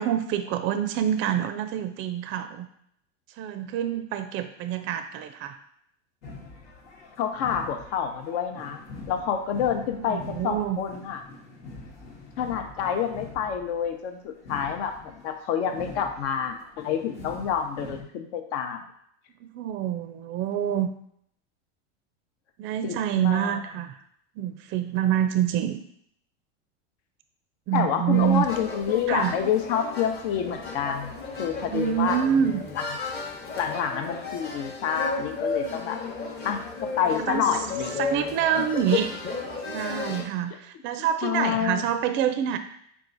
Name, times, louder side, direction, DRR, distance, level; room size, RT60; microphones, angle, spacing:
voice 1, 0.0-2.7 3.4-5.6 10.0-10.8 15.7-15.9 19.4-20.9 22.6-24.0 24.4-25.8 27.7-28.5 29.1-29.3 31.7-32.6 37.2-37.5 38.0-39.1 39.7-42.6, right 10 dB, 35° right, 9 dB, 0.4 m, -26 dB
sound 1, 6.2-18.0, left 3 dB, 85° left, 1.3 m, -44 dB
voice 2, 7.2-8.8 9.1-11.2 12.4-18.8 22.8-23.6 27.7-32.2 32.7-32.8 33.6-36.0 36.4-37.9 38.7-38.8 41.0-41.8, left 8 dB, 65° left, 5 dB, 0.8 m, -28 dB
sound 2, 28.1-40.2, left 3 dB, 30° left, 0.9 m, -34 dB
4.6 x 2.4 x 3.9 m, 0.68 s
supercardioid pair, 115°, 36 cm